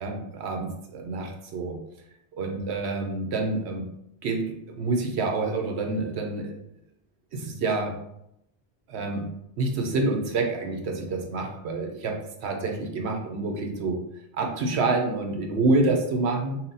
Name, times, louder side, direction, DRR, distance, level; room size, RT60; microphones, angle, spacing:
voice 1, 0.0-1.8 2.4-3.8 4.2-6.6 7.3-7.9 8.9-9.3 9.6-14.0 14.4-16.6, right 3 dB, 75° right, 2 dB, 1.0 m, -27 dB
5.6 x 2.3 x 2.6 m, 0.79 s
omnidirectional pair, 1.1 m